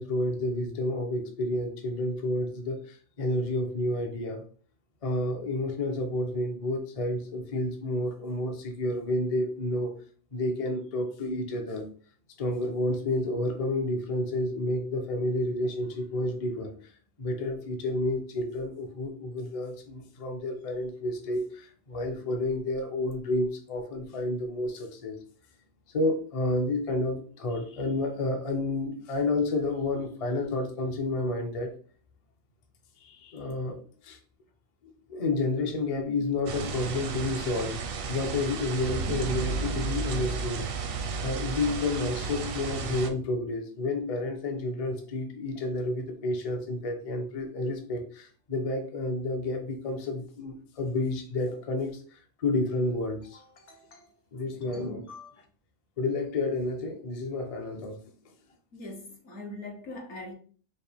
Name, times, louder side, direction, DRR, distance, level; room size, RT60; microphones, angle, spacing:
voice 1, 0.0-4.4 5.0-10.0 10.3-11.9 12.4-16.9 17.2-25.2 25.9-31.7 33.0-34.2 34.8-37.8 38.1-40.6 41.2-53.4 54.3-55.1 56.0-58.0, left 2 dB, 40° left, 0.6 m, -30 dB
sound 1, 36.5-43.1, right 5 dB, 60° right, 0.6 m, -33 dB
voice 2, 53.2-54.1 54.7-55.3 58.7-60.3, left 2 dB, 60° left, 1.2 m, -43 dB
5.0 x 2.2 x 3.4 m
omnidirectional pair, 1.4 m